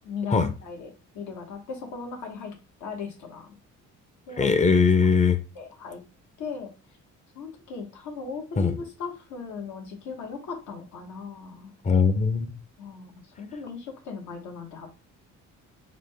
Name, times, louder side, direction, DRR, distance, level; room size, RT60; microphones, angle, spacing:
voice 1, 0.0-3.5 4.3-4.5 5.5-6.0 6.4-6.7 7.3-11.7 12.8-13.1 13.4-14.9, left 5 dB, 75° left, 1.1 m, -37 dB
voice 2, 4.4-5.4 8.6-8.7 11.8-12.5, left 5 dB, 25° left, 0.5 m, -20 dB
3.8 x 2.1 x 3.3 m
cardioid pair, 90°, 30 cm